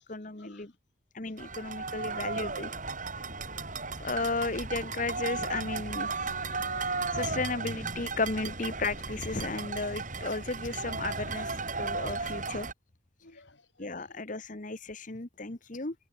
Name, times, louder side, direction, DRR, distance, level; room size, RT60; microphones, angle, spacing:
voice 1, 0.1-0.7 1.1-2.7 4.0-6.4 7.1-12.7 13.8-15.9, left 3 dB, 40° left, 1.3 m, -34 dB
sound 1, 1.4-12.7, right 4 dB, 40° right, 6.6 m, -35 dB
voice 2, 1.8-2.3 6.4-7.2 11.1-11.2 12.1-12.2 13.2-14.2 15.4-15.5, left 2 dB, 60° left, 4.8 m, -54 dB
head